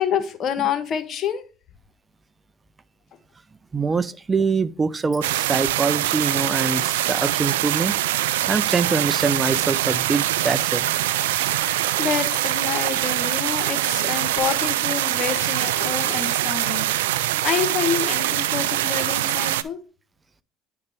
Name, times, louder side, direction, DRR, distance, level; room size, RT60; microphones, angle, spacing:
voice 1, 0.0-1.4 11.3-19.8, left 8 dB, 50° left, 1.2 m, -28 dB
voice 2, 3.7-7.9 8.5-10.8 11.9-12.0, right 4 dB, 25° right, 0.6 m, -24 dB
sound 1, 5.2-19.6, right 14 dB, 85° right, 0.3 m, -23 dB
9.6 x 4.0 x 3.4 m
hypercardioid pair, 70°, 0 cm